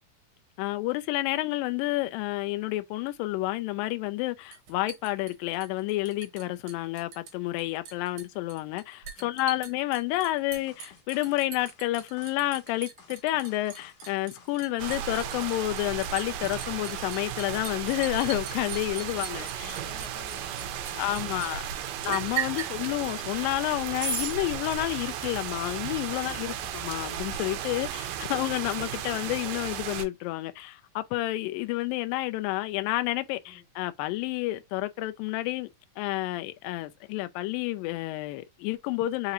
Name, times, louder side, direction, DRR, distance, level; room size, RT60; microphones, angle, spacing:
voice 1, 0.6-19.8 21.0-21.6 22.0-35.7 36.0-39.3, left 17 dB, 80° left, 2.1 m, -30 dB
Liquid, 4.5-6.4 6.7-7.3 7.6-21.5 22.1-22.7 24.0-24.4, right 6 dB, 60° right, 2.3 m, -38 dB
voice 2, 9.1-9.7 19.1-22.1 22.6-22.9 26.2-26.8 33.4-33.6, left 2 dB, 45° left, 1.4 m, -52 dB
sound 1, 10.6-16.1, left 6 dB, 65° left, 2.7 m, -55 dB
sound 2, 14.8-30.1, right 9 dB, 80° right, 2.0 m, -35 dB
5.8 x 2.6 x 2.9 m
omnidirectional pair, 4.3 m